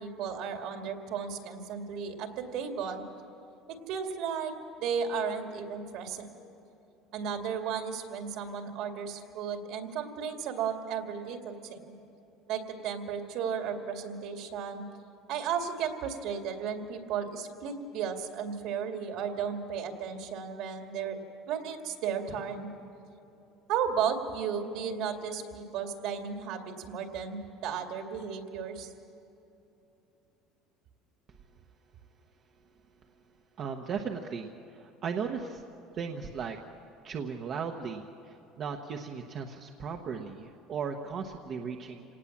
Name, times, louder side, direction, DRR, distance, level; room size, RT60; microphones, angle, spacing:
voice 1, 0.0-3.0 3.7-4.5 4.8-6.3 7.1-11.9 12.5-14.9 15.3-21.2 21.5-22.7 23.7-28.9, right 7 dB, 60° right, 4 dB, 2.4 m, -34 dB
voice 2, 33.6-34.5 34.8-35.6 36.0-36.6 37.0-42.0, right 6 dB, 35° right, 2 dB, 1.1 m, -36 dB
27.0 x 18.5 x 7.4 m, 3.0 s
cardioid pair, 165°, 0 cm